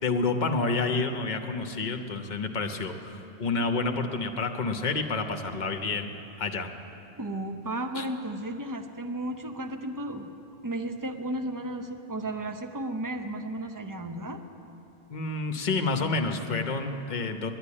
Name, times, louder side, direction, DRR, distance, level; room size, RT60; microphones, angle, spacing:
voice 1, 0.0-6.1 6.4-6.7 7.9-8.0 15.1-17.5, left 3 dB, 45° left, 5 dB, 0.9 m, -29 dB
voice 2, 7.2-10.3 10.6-14.4, right 1 dB, 20° right, 6 dB, 0.6 m, -34 dB
10.5 x 10.5 x 9.7 m, 2.8 s
omnidirectional pair, 1.1 m